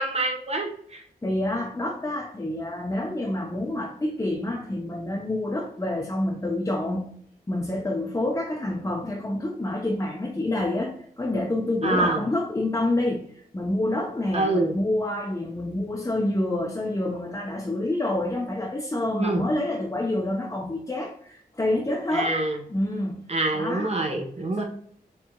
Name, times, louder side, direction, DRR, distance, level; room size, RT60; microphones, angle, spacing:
voice 1, 0.0-1.0 11.8-12.2 14.3-14.7 19.1-19.5 22.1-22.6 23.3-24.6, right 2 dB, 40° right, 1.1 m, -25 dB
voice 2, 1.2-7.2 7.5-22.4 22.7-24.0 24.6-24.7, left 1 dB, 20° left, 0.8 m, -28 dB
4.5 x 3.3 x 2.3 m
wide cardioid pair, 75°, 16 cm